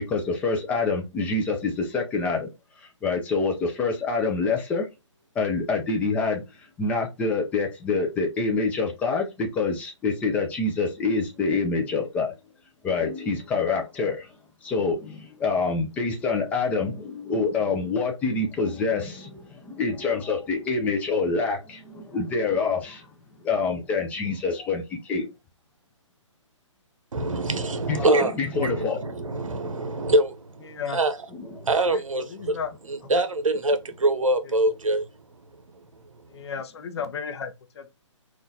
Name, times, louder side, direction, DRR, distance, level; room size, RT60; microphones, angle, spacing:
voice 1, 0.0-2.5 2.8-4.9 5.4-6.4 6.8-12.3 12.8-14.3 14.6-23.1 23.4-25.3 27.2-27.3 27.9-29.4, left 4 dB, 10° left, 0.4 m, -26 dB
voice 2, 27.1-31.1 31.5-32.6 32.9-35.0, right 2 dB, 85° right, 0.7 m, -25 dB
voice 3, 30.7-31.0 31.9-32.0 32.3-32.7 33.0-33.2 34.4-34.6 36.3-37.9, left 6 dB, 55° left, 0.7 m, -34 dB
3.7 x 2.5 x 2.6 m
hypercardioid pair, 145°, 16 cm